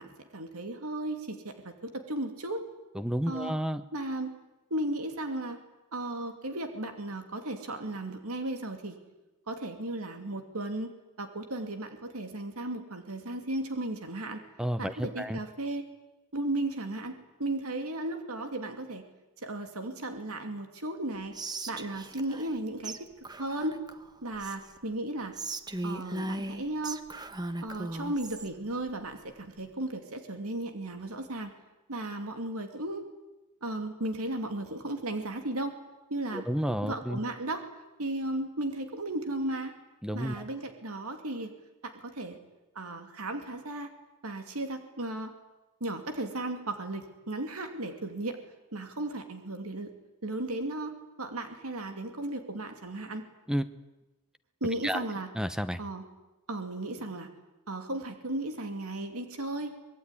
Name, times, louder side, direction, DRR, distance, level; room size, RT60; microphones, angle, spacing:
voice 1, 0.0-2.6 3.3-3.5 3.9-4.3 4.7-5.6 5.9-9.0 9.5-10.9 11.2-14.4 14.8-15.8 16.3-19.0 19.4-21.3 21.7-23.0 23.4-23.8 24.2-25.4 25.8-27.0 27.6-31.5 31.9-33.0 33.6-35.7 36.1-36.4 36.8-37.6 38.0-39.7 40.1-41.5 41.8-42.4 42.7-43.9 44.2-45.3 45.8-48.4 48.7-49.9 50.2-53.2 54.6-55.3 55.8-56.0 56.5-57.3 57.7-59.7, right 1 dB, 80° right, 6 dB, 2.6 m, -35 dB
voice 2, 2.9-3.8 14.6-15.4 36.3-37.2 40.0-40.4 53.5-53.7 54.8-55.0 55.3-55.8, equal, 5° right, 11 dB, 0.8 m, -31 dB
Whispering, 21.3-22.6 22.8-23.0 23.2-24.8 25.3-28.5, right 2 dB, 20° right, 1.2 m, -38 dB
24.5 x 20.5 x 9.9 m, 1.0 s
head